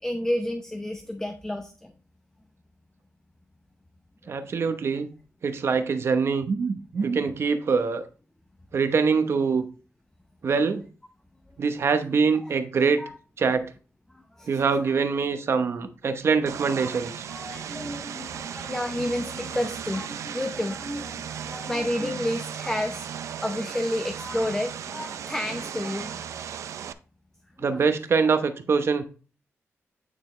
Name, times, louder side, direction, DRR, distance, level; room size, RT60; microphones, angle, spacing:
voice 1, 0.0-1.9 4.2-4.4 4.8-4.9 12.4-12.5 13.0-13.1 14.1-14.9 17.3-23.1 23.4-26.2 27.6-27.8, left 1 dB, 10° left, 5 dB, 0.7 m, -31 dB
voice 2, 4.3-5.1 5.4-8.0 8.7-9.6 10.4-10.8 11.6-13.0 13.4-13.6 14.5-17.3 27.6-29.0, right 5 dB, 55° right, 9 dB, 0.9 m, -24 dB
Vehicle, 16.5-26.9, right 8 dB, 80° right, 0.4 m, -36 dB
9.3 x 4.1 x 3.2 m, 0.36 s
cardioid pair, 90°, 5 cm